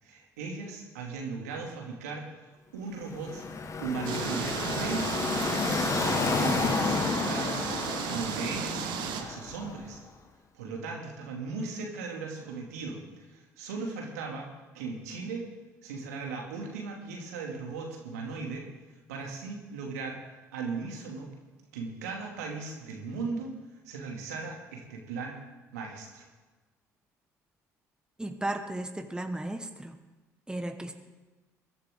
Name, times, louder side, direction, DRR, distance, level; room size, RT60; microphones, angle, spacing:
voice 1, 0.0-3.4 3.8-5.5 6.0-7.7 8.1-8.9 9.2-10.0 10.5-14.5 14.7-15.4 15.8-18.7 19.1-20.2 20.5-21.3 21.7-23.6 23.8-25.4 25.7-26.3, right 4 dB, 80° right, 0 dB, 2.5 m, -37 dB
Car passing by / Traffic noise roadway noise, 3.0-10.0, left 4 dB, 35° left, 1.4 m, -31 dB
sound 1, 4.0-9.2, right 8 dB, 65° right, 1.5 m, -34 dB
voice 2, 28.2-30.0 30.5-30.9, right 1 dB, 10° right, 6 dB, 1.5 m, -35 dB
22.0 x 11.0 x 3.8 m, 1.2 s
hypercardioid pair, 55°, 8 cm